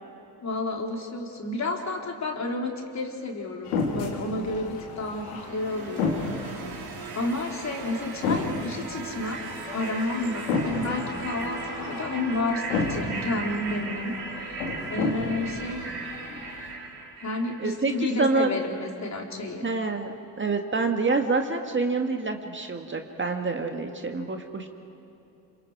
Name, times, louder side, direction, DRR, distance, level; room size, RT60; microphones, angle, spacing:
voice 1, 0.4-6.2 7.1-9.4 9.7-15.9 17.2-19.7, left 2 dB, 40° left, 1 dB, 3.7 m, -31 dB
sound 1, 3.6-16.7, left 3 dB, 85° left, 3.0 m, -33 dB
sound 2, 5.2-18.1, right 4 dB, 60° right, 4.3 m, -38 dB
voice 2, 17.6-17.9 18.2-18.5 19.6-24.7, right 3 dB, 25° right, 4 dB, 1.8 m, -27 dB
27.0 x 26.5 x 4.9 m, 2.9 s
hypercardioid pair, 55°, 44 cm